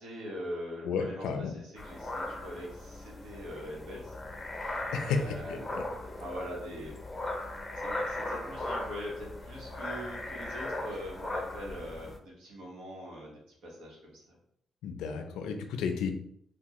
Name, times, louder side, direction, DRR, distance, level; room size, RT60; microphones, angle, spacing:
voice 1, 0.0-4.1 4.5-7.0 7.7-14.3, equal, 80° right, -3 dB, 1.2 m, -42 dB
voice 2, 0.8-1.5 4.9-5.8 14.8-16.1, left 5 dB, 85° left, 6 dB, 0.4 m, -32 dB
sound 1, 1.8-12.2, left 1 dB, 20° left, 0.6 m, -38 dB
3.4 x 2.3 x 3.0 m, 0.71 s
cardioid pair, 90°, 0 cm